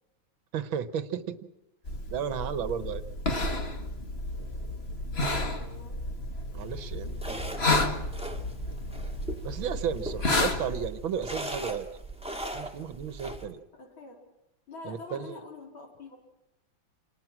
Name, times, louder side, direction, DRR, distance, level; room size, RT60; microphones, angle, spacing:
voice 1, 0.5-1.4 2.1-3.0 6.5-7.1 9.4-11.9 12.5-13.6 14.9-15.4, right 8 dB, 80° right, 12 dB, 1.9 m, -33 dB
sound 1, 1.8-10.9, left 2 dB, 30° left, 2.0 m, -31 dB
voice 2, 5.1-6.0 10.1-10.7 13.7-14.2 14.7-16.2, left 3 dB, 90° left, 2 dB, 4.7 m, -46 dB
sound 2, 6.6-13.5, right 1 dB, 5° right, 2.3 m, -40 dB
28.0 x 20.0 x 6.0 m, 0.93 s
omnidirectional pair, 2.1 m